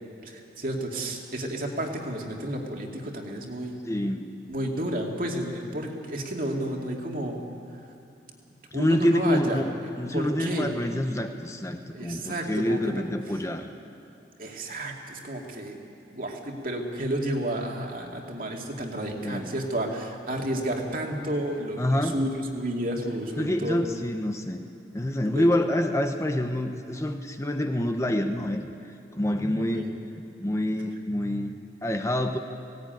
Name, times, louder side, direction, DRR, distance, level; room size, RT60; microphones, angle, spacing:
voice 1, 0.2-3.8 4.5-7.4 8.7-9.6 10.1-10.7 11.9-13.0 14.4-15.8 16.1-23.8 25.3-25.5 29.6-29.9, right 1 dB, 50° right, 1 dB, 2.4 m, -31 dB
voice 2, 3.8-4.4 8.7-9.7 10.0-13.7 19.2-19.5 21.8-22.2 23.4-24.6 24.9-28.7 29.1-31.5 31.8-32.4, left 1 dB, 15° left, 6 dB, 0.9 m, -27 dB
18.0 x 17.0 x 9.3 m, 2.5 s
head